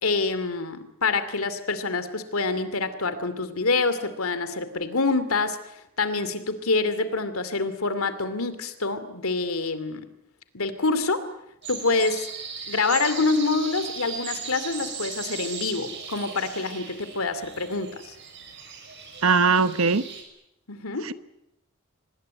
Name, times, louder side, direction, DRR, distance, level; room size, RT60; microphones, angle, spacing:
voice 1, 0.0-10.0 10.5-11.2 11.7-12.3 12.7-18.2 20.7-21.1, left 3 dB, 75° left, 12 dB, 2.5 m, -26 dB
sound 1, 11.6-20.2, right 5 dB, 55° right, 5.9 m, -38 dB
voice 2, 19.2-20.0 21.0-21.1, right 4 dB, 70° right, 13 dB, 1.1 m, -20 dB
25.0 x 20.0 x 9.5 m, 0.82 s
head